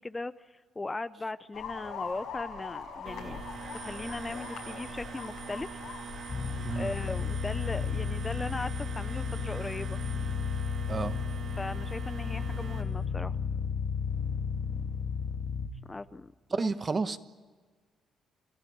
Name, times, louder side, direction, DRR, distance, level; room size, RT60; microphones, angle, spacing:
voice 1, 0.0-3.4 3.8-5.8 6.7-10.0 11.6-13.4 15.9-16.7, left 2 dB, 20° left, 14 dB, 0.6 m, -38 dB
sound 1, 1.5-7.9, left 6 dB, 80° left, 5.8 m, -43 dB
sound 2, 3.1-12.8, right 6 dB, 70° right, 3.1 m, -43 dB
sound 3, 6.3-15.7, left 6 dB, 45° left, 2.2 m, -33 dB
voice 2, 16.5-17.2, right 4 dB, 35° right, 12 dB, 1.2 m, -30 dB
27.5 x 15.0 x 10.0 m, 1.5 s
cardioid pair, 90°, 0 cm